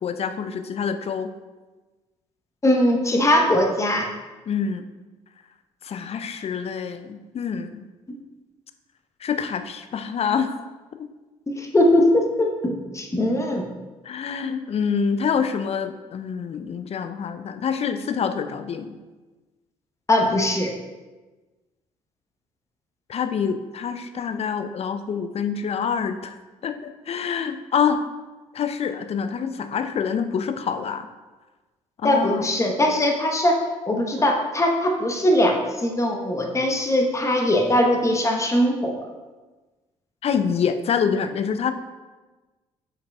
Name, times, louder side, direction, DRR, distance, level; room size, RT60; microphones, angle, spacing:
voice 1, 0.0-1.3 4.5-4.8 5.8-7.9 9.2-10.6 14.0-19.0 23.1-26.3 26.6-28.0 28.5-31.1 32.0-32.4 40.2-41.7, left 6 dB, 35° left, 9 dB, 0.5 m, -26 dB
voice 2, 2.6-4.1 11.5-13.6 20.1-20.7 32.0-33.6 33.9-39.0, left 1 dB, 15° left, 2 dB, 1.0 m, -20 dB
7.9 x 5.2 x 2.3 m, 1.2 s
figure-of-eight pair, 45°, 17 cm